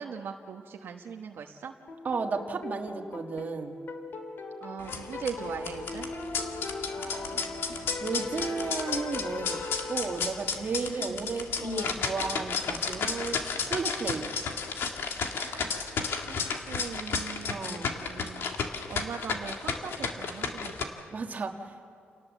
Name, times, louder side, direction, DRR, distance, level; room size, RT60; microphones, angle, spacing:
voice 1, 0.0-1.7 4.6-6.1 10.9-11.3 15.4-16.4 16.7-18.5 18.9-20.9, right 6 dB, 75° right, 3 dB, 1.3 m, -40 dB
sound 1, 1.9-10.8, left 3 dB, 65° left, 2.6 m, -39 dB
voice 2, 2.0-3.8 7.0-7.7 8.0-9.6 9.9-13.4 13.7-14.3 17.5-17.9 21.1-21.9, right 4 dB, 45° right, 3 dB, 1.7 m, -34 dB
sound 2, 4.8-20.8, left 5 dB, 80° left, 1.9 m, -33 dB
29.0 x 18.5 x 7.4 m, 2.3 s
wide cardioid pair, 120°, 4 cm